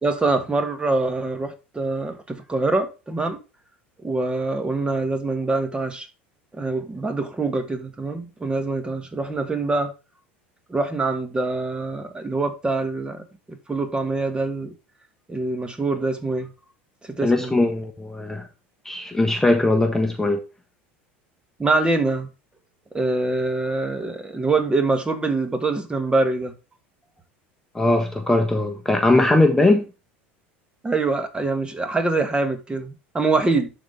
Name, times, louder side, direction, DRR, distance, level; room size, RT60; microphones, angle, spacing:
voice 1, 0.0-3.4 4.0-6.1 6.5-9.9 10.7-14.7 15.3-16.5 17.0-17.6 21.6-22.3 22.9-26.5 30.8-33.7, right 3 dB, 15° right, 1.7 m, -24 dB
voice 2, 17.2-18.5 18.8-20.4 27.7-29.8, left 2 dB, 5° left, 1.2 m, -20 dB
11.5 x 4.2 x 3.4 m
hypercardioid pair, 80°, 6 cm